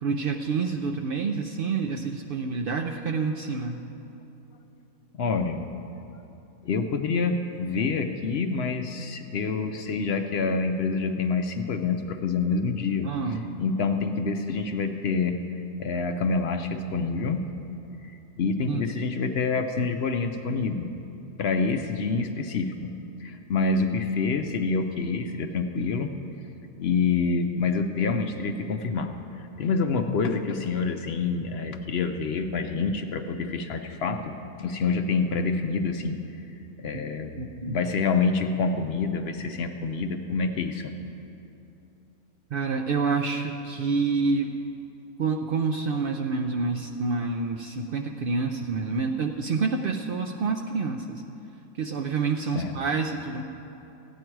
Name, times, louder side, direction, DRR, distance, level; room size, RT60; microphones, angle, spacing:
voice 1, 0.0-3.8 13.0-13.4 18.7-18.8 37.4-37.8 42.5-44.5 45.2-51.2 51.7-53.4, right 4 dB, 75° right, 3 dB, 0.5 m, -28 dB
voice 2, 5.2-5.7 6.6-15.4 15.8-17.5 18.0-20.9 21.4-22.9 23.2-26.1 26.8-29.1 29.4-36.2 36.8-40.9 52.5-52.7, left 4 dB, 60° left, 7 dB, 0.7 m, -27 dB
15.5 x 9.9 x 4.6 m, 2.9 s
omnidirectional pair, 1.6 m